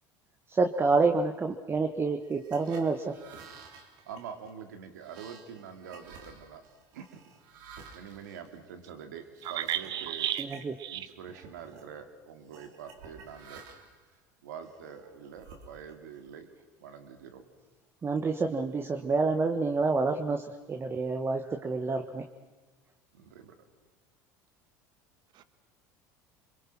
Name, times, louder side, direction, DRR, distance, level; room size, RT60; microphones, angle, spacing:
voice 1, 0.5-3.2 10.4-10.7 18.0-22.3, right 3 dB, 25° right, 5 dB, 1.6 m, -28 dB
sound 1, 2.2-9.3 9.8-10.0 10.3-11.0 11.2-11.9 12.5-14.0 14.6-16.2, right 5 dB, 70° right, 3.7 m, -52 dB
voice 2, 4.1-6.6 6.9-7.2 7.9-10.4 10.9-13.6 14.1-16.5 16.8-17.4 23.1-23.6, right 7 dB, 85° right, 7 dB, 2.5 m, -45 dB
voice 3, 9.4-10.5 10.8-11.1, right 12 dB, 55° right, 12 dB, 1.6 m, -32 dB
28.0 x 22.5 x 6.1 m, 1.2 s
hypercardioid pair, 85°, 9 cm